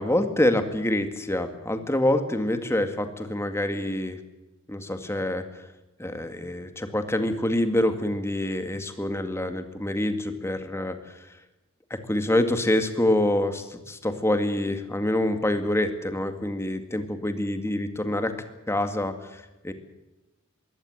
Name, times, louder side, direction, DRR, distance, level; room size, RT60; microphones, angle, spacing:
voice 1, 0.0-4.2 4.7-5.7 6.0-11.3 11.9-18.3 18.7-19.7, left 1 dB, 10° left, 8 dB, 2.0 m, -26 dB
22.5 x 17.0 x 7.9 m, 1.0 s
head